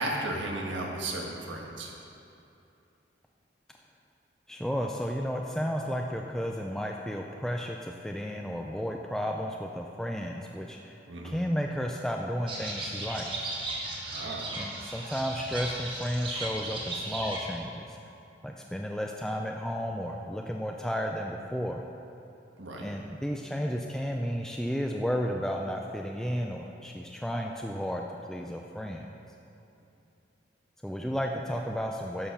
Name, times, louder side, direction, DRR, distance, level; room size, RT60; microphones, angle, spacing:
voice 1, 0.0-1.9 11.1-11.4 14.1-14.5 22.6-22.9, right 1 dB, 80° right, 0 dB, 1.5 m, -34 dB
voice 2, 4.5-13.5 14.5-18.0 18.4-21.8 22.8-28.0 28.3-29.1 30.8-32.3, equal, 5° left, 1 dB, 0.4 m, -33 dB
sound 1, 12.5-17.6, right 2 dB, 25° right, 1.4 m, -36 dB
11.0 x 6.7 x 5.6 m, 2.8 s
head